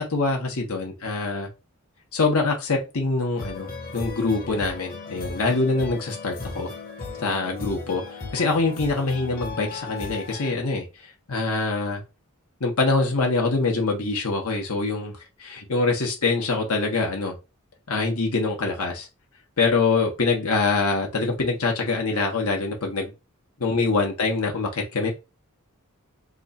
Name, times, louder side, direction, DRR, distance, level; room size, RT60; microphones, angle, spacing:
voice 1, 0.0-1.5 2.1-6.7 7.2-8.0 8.3-10.9 11.3-12.0 12.6-15.1 15.4-17.4 17.9-19.1 19.6-23.1 23.6-25.1, left 3 dB, 85° left, 1.0 m, -24 dB
sound 1, 3.3-10.5, left 4 dB, 45° left, 0.8 m, -36 dB
3.0 x 2.4 x 4.0 m
head